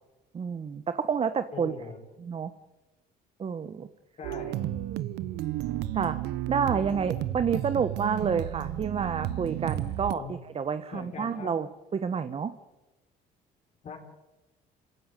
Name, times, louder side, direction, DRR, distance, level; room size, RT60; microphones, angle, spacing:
voice 1, 0.3-1.7 2.2-2.5 3.4-3.9 5.9-6.2 6.5-12.5, right 6 dB, 35° right, 11 dB, 1.1 m, -29 dB
voice 2, 1.5-2.0 4.2-4.6 10.1-10.3 10.9-11.5 13.8-14.0, left 5 dB, 45° left, 1 dB, 4.3 m, -41 dB
sound 1, 4.2-10.1, right 13 dB, 85° right, 1.0 m, -32 dB
27.0 x 16.0 x 9.3 m, 1.1 s
cardioid pair, 110°, 17 cm